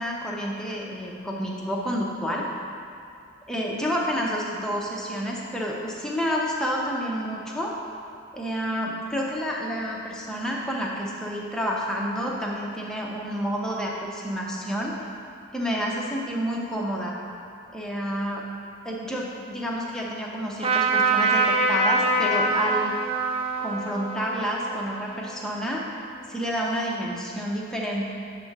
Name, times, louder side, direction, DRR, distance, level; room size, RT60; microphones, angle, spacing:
voice 1, 0.0-2.5 3.5-7.7 8.3-14.9 15.5-17.2 17.7-18.4 18.8-22.9 23.6-25.8 26.3-28.1, equal, 5° left, -3 dB, 0.8 m, -29 dB
Trumpet, 20.6-26.1, right 3 dB, 25° right, 0.6 m, -25 dB
8.5 x 3.7 x 6.6 m, 2.6 s
head